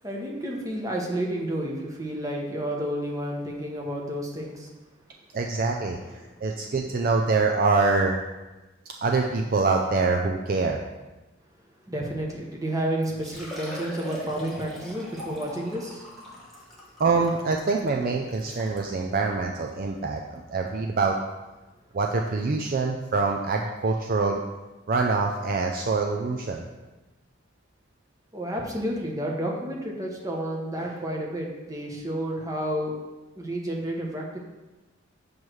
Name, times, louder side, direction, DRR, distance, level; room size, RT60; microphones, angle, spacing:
voice 1, 0.0-4.7 6.0-6.1 11.9-16.0 28.3-33.0 33.4-34.4, right 1 dB, 15° right, -1 dB, 1.0 m, -31 dB
voice 2, 5.3-8.2 9.0-10.8 17.0-21.1 21.9-24.4 24.9-26.7, right 4 dB, 45° right, 2 dB, 0.4 m, -25 dB
Liquid, 13.0-18.9 19.6-19.7 20.2-20.3 21.9-22.0 22.2-22.3, equal, ahead, 1.2 m, -42 dB
7.1 x 3.2 x 6.1 m, 1.1 s
head